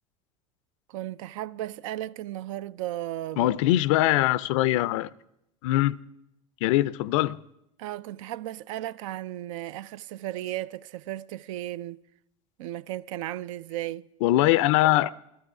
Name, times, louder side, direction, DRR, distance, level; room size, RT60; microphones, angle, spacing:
voice 1, 0.9-3.5 7.8-12.0 12.6-14.1, right 14 dB, 75° right, 0.4 m, -35 dB
voice 2, 3.4-5.1 5.6-6.0 6.6-7.4 14.2-15.1, left 16 dB, 70° left, 0.4 m, -22 dB
13.5 x 13.5 x 4.8 m
hypercardioid pair, 90°, 17 cm